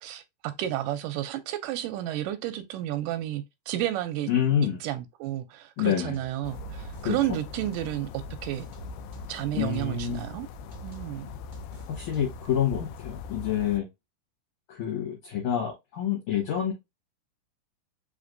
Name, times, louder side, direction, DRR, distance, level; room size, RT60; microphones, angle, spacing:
voice 1, 0.0-4.3 4.8-8.1 8.4-8.7 9.3-10.5 10.8-11.3, right 13 dB, 80° right, 2.0 m, -31 dB
voice 2, 4.3-4.8 5.8-6.2 7.0-7.2 9.5-10.2 11.9-13.9 14.7-16.7, left 9 dB, 65° left, 2.3 m, -27 dB
sound 1, 6.1-8.2 8.5-12.5, right 5 dB, 20° right, 1.2 m, -46 dB
sound 2, 6.4-13.8, left 5 dB, 85° left, 1.8 m, -41 dB
5.1 x 3.4 x 2.5 m
omnidirectional pair, 4.2 m